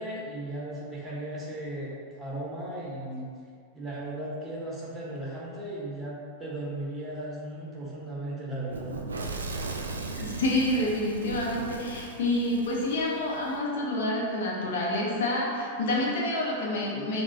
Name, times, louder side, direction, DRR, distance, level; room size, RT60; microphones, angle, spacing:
voice 1, 0.0-3.3 3.7-9.0, right 1 dB, 10° right, -6 dB, 1.0 m, -36 dB
Fire / Explosion, 8.7-13.5, right 3 dB, 75° right, 0.3 m, -37 dB
voice 2, 10.1-17.2, left 1 dB, 60° left, -3 dB, 0.8 m, -28 dB
5.9 x 2.2 x 2.7 m, 2.2 s
figure-of-eight pair, 90°, 0 cm